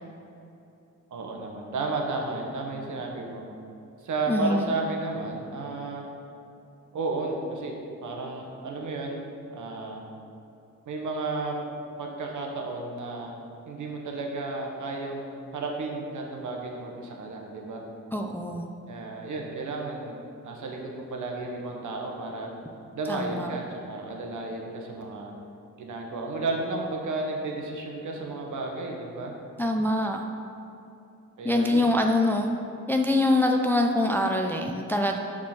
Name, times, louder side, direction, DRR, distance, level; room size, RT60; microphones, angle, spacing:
voice 1, 1.1-3.4 4.0-6.0 6.9-7.7 8.0-9.2 9.5-10.0 10.9-11.6 12.0-13.3 13.7-17.8 18.9-20.2 20.4-22.5 22.9-25.3 25.8-29.3 31.4-31.9, right 3 dB, 70° right, 1 dB, 1.1 m, -33 dB
voice 2, 4.3-4.7 18.1-18.7 23.1-23.5 29.6-30.2 31.4-32.6 32.9-35.2, left 1 dB, 5° left, 3 dB, 0.3 m, -24 dB
6.2 x 3.7 x 5.9 m, 2.7 s
cardioid pair, 80°, 31 cm